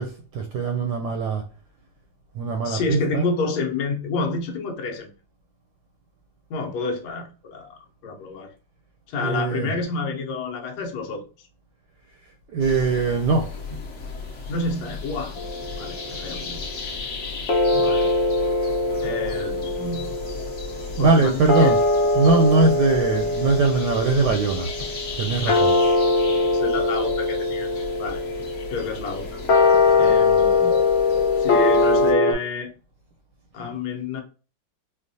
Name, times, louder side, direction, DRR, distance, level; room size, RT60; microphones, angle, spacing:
voice 1, 0.0-1.4 2.4-3.2 9.2-9.7 12.5-13.5 21.0-21.8 22.2-24.9 25.2-25.7 29.8-30.1, right 4 dB, 75° right, 1.1 m, -21 dB
voice 2, 2.6-5.1 6.5-8.5 9.1-11.3 14.5-15.4 15.8-16.6 17.7-18.1 19.0-20.1 21.0-21.7 25.5-25.6 26.5-27.7 28.0-28.2 28.7-29.4 30.0-30.8 31.4-32.7 33.5-34.2, left 3 dB, 65° left, 1.2 m, -29 dB
sound 1, 12.6-32.1, left 3 dB, 50° left, 1.0 m, -35 dB
sound 2, 15.4-16.7 17.5-32.3, left 3 dB, 85° left, 0.5 m, -22 dB
4.4 x 2.3 x 2.6 m
omnidirectional pair, 2.1 m